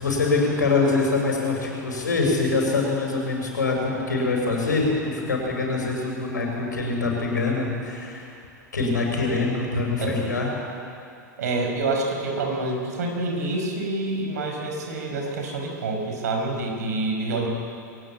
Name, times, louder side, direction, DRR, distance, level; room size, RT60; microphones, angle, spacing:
voice 1, 0.0-8.2 8.7-10.5, left 3 dB, 75° left, 0 dB, 6.4 m, -24 dB
voice 2, 11.4-17.5, right 2 dB, 60° right, 2 dB, 5.4 m, -27 dB
22.0 x 18.5 x 8.8 m, 2.5 s
figure-of-eight pair, 90°, 10 cm